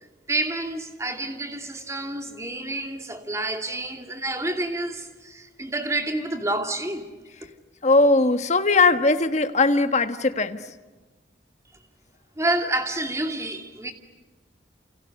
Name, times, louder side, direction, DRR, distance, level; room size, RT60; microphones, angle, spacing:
voice 1, 0.3-7.0 12.4-13.9, right 2 dB, 15° right, 2.6 m, -28 dB
voice 2, 7.8-10.6, left 3 dB, 40° left, 1.4 m, -19 dB
29.5 x 29.0 x 6.6 m
head